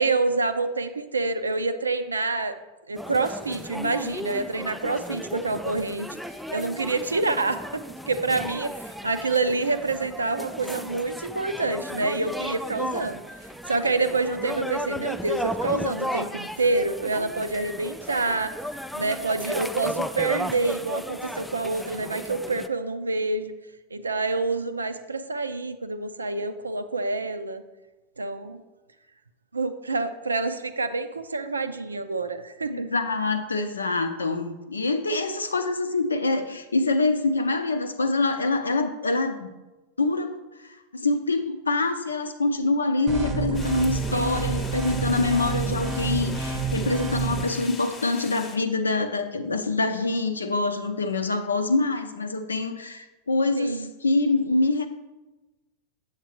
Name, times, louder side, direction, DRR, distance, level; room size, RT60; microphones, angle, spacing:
voice 1, 0.0-2.5 2.9-6.1 6.5-7.6 8.1-13.2 13.7-18.5 18.9-23.5 23.9-27.6 28.2-28.6 29.5-32.9 44.1-44.5 53.6-53.9, right 3 dB, 75° right, 11 dB, 0.4 m, -27 dB
sound 1, 3.0-22.7, equal, ahead, 0.3 m, -35 dB
voice 2, 32.7-39.5 40.0-40.3 40.6-54.9, left 3 dB, 75° left, 9 dB, 0.6 m, -25 dB
sound 2, 43.1-47.5, right 4 dB, 30° right, 0.7 m, -28 dB
sound 3, 43.5-48.6, left 4 dB, 25° left, 0.8 m, -41 dB
8.0 x 7.3 x 2.9 m, 1.1 s
figure-of-eight pair, 90°, 0 cm